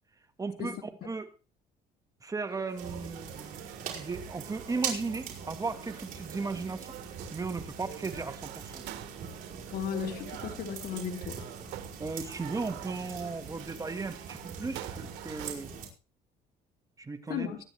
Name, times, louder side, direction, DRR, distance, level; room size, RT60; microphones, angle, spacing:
voice 1, 0.4-1.3 2.2-3.7 3.9-7.0 7.3-8.9 12.0-15.7 17.0-17.5, right 4 dB, 20° right, 1.4 m, -36 dB
sound 1, 2.5-15.5, right 13 dB, 90° right, 1.7 m, -47 dB
sound 2, 2.8-15.9, right 6 dB, 55° right, 5.0 m, -42 dB
voice 2, 9.7-11.4 17.3-17.6, left 8 dB, 65° left, 2.8 m, -35 dB
23.0 x 10.0 x 3.2 m
cardioid pair, 110°, 17 cm